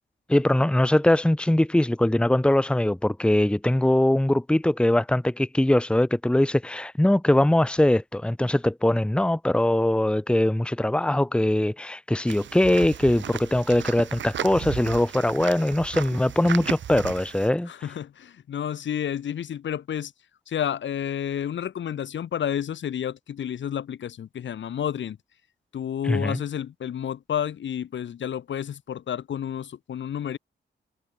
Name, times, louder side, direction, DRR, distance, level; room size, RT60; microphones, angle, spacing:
voice 1, 0.3-17.7 26.0-26.4, left 1 dB, 5° left, 1.1 m, -22 dB
sound 1, 12.3-17.5, right 9 dB, 85° right, 2.6 m, -35 dB
voice 2, 17.7-20.1 20.5-25.2 25.7-30.4, left 9 dB, 90° left, 6.7 m, -30 dB
cardioid pair, 95°, 19 cm